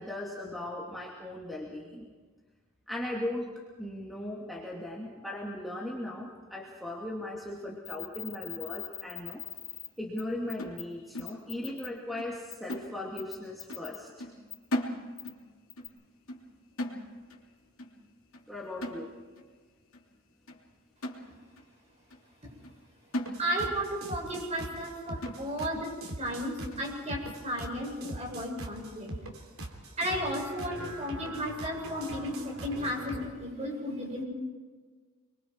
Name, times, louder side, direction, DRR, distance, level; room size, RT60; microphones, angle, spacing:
voice 1, 0.0-2.1 2.9-3.5 3.8-9.4 10.0-14.3 18.5-19.1 25.7-25.8, left 1 dB, ahead, -3 dB, 2.6 m, -38 dB
sound 1, 7.8-9.9 10.2-10.3 10.5-10.8 11.2-11.9 12.5-12.7 13.2-14.0 14.5-14.6 15.2-15.3 15.7-15.9, left 13 dB, 40° left, 3.9 m, -41 dB
sound 2, 10.6-11.9 12.2-12.4 12.7-13.4 13.7-13.9 14.2-15.5 15.8-16.0 16.3-17.5 17.8-18.0 18.3-18.5 18.8-19.5 19.9-20.0 20.5-20.6 21.0-21.7 22.1-22.2 22.6-22.8 23.1-23.9 24.2-24.3 24.7-24.8 25.2-25.8 26.3-26.4 26.7-26.9, left 1 dB, 75° left, 3.1 m, -38 dB
sound 3, 23.2-33.3, right 1 dB, 75° right, 3.3 m, -41 dB
voice 2, 23.4-25.9 26.2-29.1 30.0-34.2, equal, 30° right, -1 dB, 7.3 m, -34 dB
27.5 x 23.5 x 4.7 m, 1.5 s
head